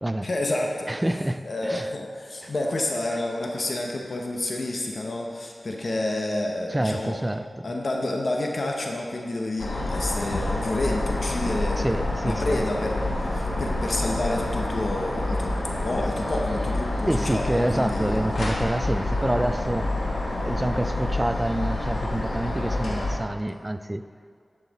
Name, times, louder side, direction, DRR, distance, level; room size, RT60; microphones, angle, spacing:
voice 1, 0.2-0.9 1.4-7.2 7.6-11.9 12.2-18.2, left 2 dB, 60° left, 1 dB, 1.0 m, -29 dB
voice 2, 0.9-1.9 2.4-2.5 6.7-7.7 11.8-12.6 17.0-19.9 20.4-24.0, right 1 dB, 15° right, 12 dB, 0.3 m, -27 dB
sound 1, 9.6-23.2, left 2 dB, 75° left, 1.4 m, -28 dB
10.5 x 5.7 x 4.1 m, 2.1 s
wide cardioid pair, 65°, 0 cm